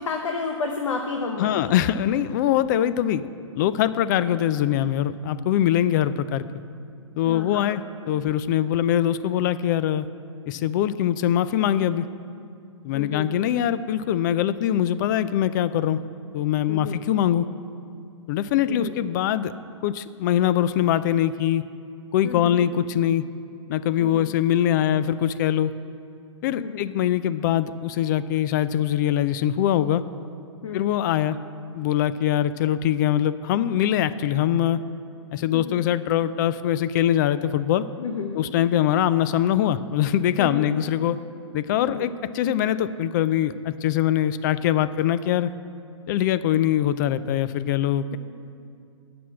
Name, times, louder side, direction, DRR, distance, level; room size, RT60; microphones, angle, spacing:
voice 1, 0.0-1.7 7.2-7.8 12.9-13.3 16.7-17.0 18.7-19.0 22.2-22.7 24.0-24.3 26.5-26.9 30.6-30.9 35.5-35.8 38.0-38.4 40.4-40.7 41.8-42.1 48.1-48.2, left 5 dB, 75° left, 3 dB, 0.9 m, -31 dB
voice 2, 1.4-3.2 3.6-6.5 7.2-7.8 8.1-10.1 10.5-12.1 12.8-16.0 16.3-17.5 18.3-19.5 19.8-21.7 22.1-23.2 23.7-25.7 26.4-30.0 30.7-31.4 31.7-34.8 35.3-37.9 38.3-41.2 41.5-45.5 46.1-48.2, left 11 dB, 40° left, 14 dB, 0.4 m, -23 dB
9.2 x 6.0 x 7.4 m, 2.4 s
hypercardioid pair, 135°, 16 cm